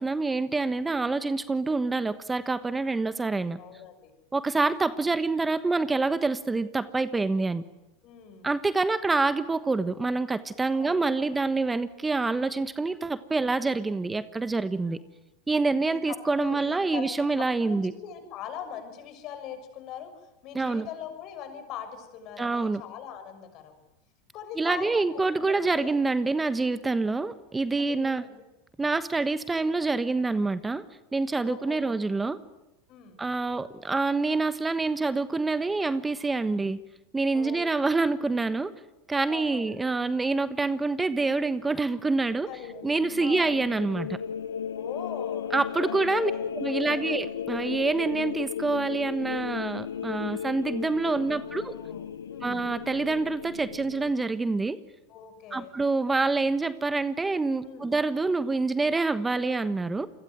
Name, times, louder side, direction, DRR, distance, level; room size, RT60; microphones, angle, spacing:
voice 1, 0.0-3.6 4.3-7.6 8.4-15.0 15.5-17.9 20.5-20.9 22.4-22.8 24.6-28.2 28.8-30.8 31.1-32.4 33.2-36.8 37.1-38.7 39.1-42.5 42.8-44.2 45.5-51.8 52.4-54.8 55.5-60.1, right 3 dB, 15° right, 14 dB, 1.2 m, -26 dB
voice 2, 3.6-4.1 8.0-8.5 10.7-11.4 14.6-15.0 15.9-23.7 24.3-26.0 27.2-27.3 27.9-28.4 31.4-32.0 32.9-33.2 37.3-37.9 39.3-39.7 42.4-42.8 43.2-43.5 44.8-45.6 45.8-47.2 51.2-52.6 55.1-55.7 57.6-57.9, left 8 dB, 50° left, 8 dB, 6.6 m, -42 dB
sound 1, 42.2-54.1, left 8 dB, 90° left, 1.0 m, -35 dB
28.5 x 22.5 x 9.4 m, 0.95 s
hypercardioid pair, 100°, 0 cm